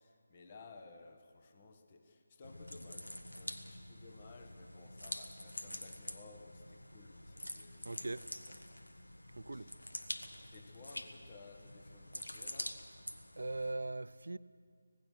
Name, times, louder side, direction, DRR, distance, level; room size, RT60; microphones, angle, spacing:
voice 1, 0.0-8.8 9.5-9.8 10.5-12.8, left 3 dB, 30° left, 1.5 m, -57 dB
sound 1, 2.4-13.7, left 1 dB, 75° left, 1.6 m, -47 dB
voice 2, 7.8-8.3 9.3-9.7 13.4-14.4, right 2 dB, 65° right, 0.6 m, -40 dB
25.5 x 18.5 x 6.5 m
figure-of-eight pair, 160°, 0 cm